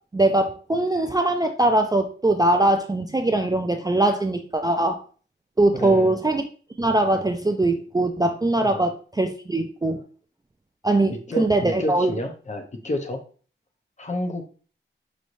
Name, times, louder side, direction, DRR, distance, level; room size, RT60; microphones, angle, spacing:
voice 1, 0.1-5.0 5.6-6.4 6.8-10.0 10.8-12.1, right 2 dB, 20° right, 5 dB, 0.4 m, -21 dB
voice 2, 5.7-6.2 8.6-8.9 11.1-13.2 14.0-14.4, left 1 dB, 35° left, 4 dB, 0.8 m, -30 dB
5.3 x 3.2 x 2.6 m, 0.40 s
wide cardioid pair, 100°, 21 cm